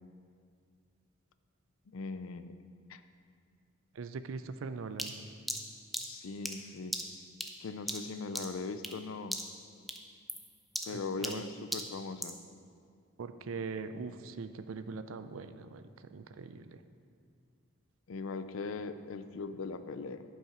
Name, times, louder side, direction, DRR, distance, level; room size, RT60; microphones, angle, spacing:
voice 1, 1.9-2.5 2.9-3.0 6.0-6.9 7.6-9.4 10.9-12.4 18.1-20.2, left 4 dB, 80° left, 11 dB, 0.4 m, -40 dB
voice 2, 3.9-5.1 10.9-11.4 13.2-16.8, right 4 dB, 75° right, 11 dB, 0.4 m, -41 dB
sound 1, 5.0-9.0 9.3-9.6 9.9-12.4, equal, ahead, 0.5 m, -39 dB
10.5 x 5.6 x 5.0 m, 2.3 s
head